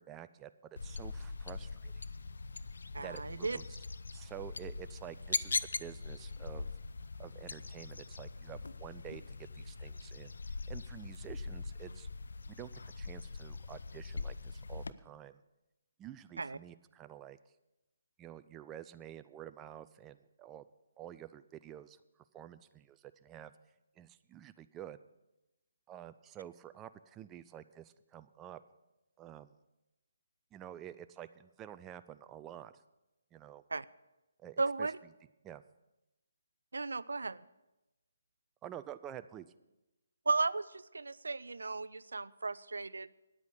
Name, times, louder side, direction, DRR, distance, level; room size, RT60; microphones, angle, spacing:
voice 1, 0.0-2.0 3.0-3.6 4.1-6.7 7.2-10.3 10.7-12.1 12.5-12.7 13.0-15.4 16.0-17.4 18.2-20.7 21.0-22.0 22.3-23.5 24.0-25.0 25.9-28.6 29.2-29.5 30.5-32.8 33.3-33.6 34.4-34.9 35.4-35.6 38.6-39.5, right 11 dB, 15° right, 11 dB, 0.4 m, -49 dB
sound 1, 0.8-14.9, left 3 dB, 75° left, 0.5 m, -41 dB
voice 2, 2.9-3.6 16.4-16.6 33.7-33.8 34.6-35.0 36.7-37.4 40.3-43.2, right 3 dB, 85° right, 18 dB, 0.4 m, -35 dB
9.9 x 8.3 x 8.2 m, 0.98 s
hypercardioid pair, 150°, 0 cm